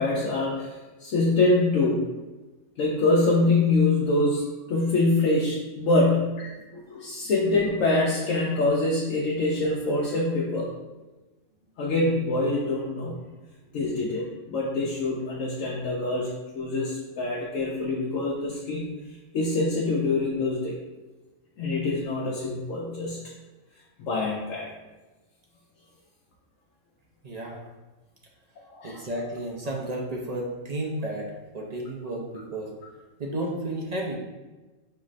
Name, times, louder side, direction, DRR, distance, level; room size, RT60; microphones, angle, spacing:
voice 1, 0.0-2.0 2.8-10.7 11.8-13.2 13.7-19.0 19.3-20.8 21.6-23.2 24.0-24.7 28.7-29.0, left 2 dB, 85° left, -3 dB, 1.0 m, -25 dB
voice 2, 27.2-27.6 28.8-32.7 33.2-34.1, right 1 dB, 45° right, -1 dB, 0.5 m, -32 dB
5.5 x 3.1 x 2.5 m, 1.2 s
omnidirectional pair, 1.3 m